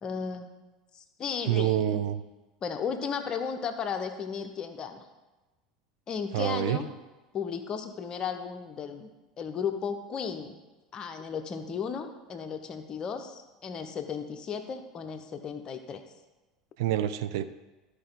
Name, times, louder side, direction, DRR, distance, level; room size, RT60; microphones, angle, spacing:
voice 1, 0.0-0.5 0.9-2.0 2.6-5.0 6.1-6.9 7.3-9.1 9.4-10.6 10.9-16.0, left 6 dB, 35° left, 7 dB, 0.9 m, -35 dB
voice 2, 1.5-2.2 6.3-6.8 16.8-17.4, right 12 dB, 60° right, 11 dB, 0.4 m, -27 dB
13.0 x 4.9 x 3.9 m, 1.1 s
figure-of-eight pair, 75°, 2 cm